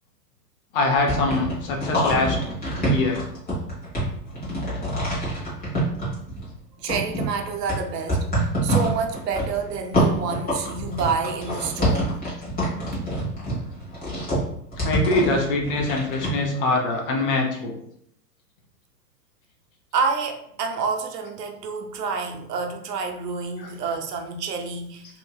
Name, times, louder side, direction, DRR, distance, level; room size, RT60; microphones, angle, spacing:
voice 1, 0.7-2.4 2.8-3.2 14.8-17.8 23.6-23.9, left 2 dB, 35° left, 1 dB, 0.5 m, -23 dB
sound 1, 1.0-6.5 6.9-16.3, right 1 dB, 20° left, 1.2 m, -26 dB
voice 2, 6.8-12.1 19.9-25.0, right 5 dB, 75° right, 4 dB, 0.6 m, -28 dB
2.8 x 2.6 x 2.3 m, 0.71 s
hypercardioid pair, 115°, 49 cm